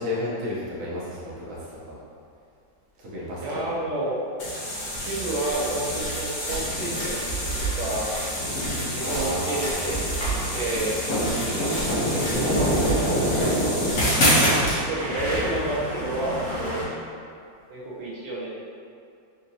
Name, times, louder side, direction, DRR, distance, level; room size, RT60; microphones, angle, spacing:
voice 1, 0.0-2.0 3.0-3.7 9.0-9.9 12.0-13.6, left 1 dB, 55° right, -7 dB, 1.0 m, -32 dB
voice 2, 3.4-4.2 4.7-7.2 7.6-8.2 8.9-11.0 12.3-12.7 14.9-16.8 17.7-18.5, right 2 dB, 85° right, -6 dB, 1.5 m, -30 dB
sound 1, 4.4-14.8, equal, 55° left, 1.2 m, -25 dB
sound 2, 11.7-11.9 12.6-12.7 13.0-13.1 13.5-13.6 14.4-16.8, equal, 30° right, 0.8 m, -31 dB
3.8 x 2.9 x 2.6 m, 2.4 s
omnidirectional pair, 1.9 m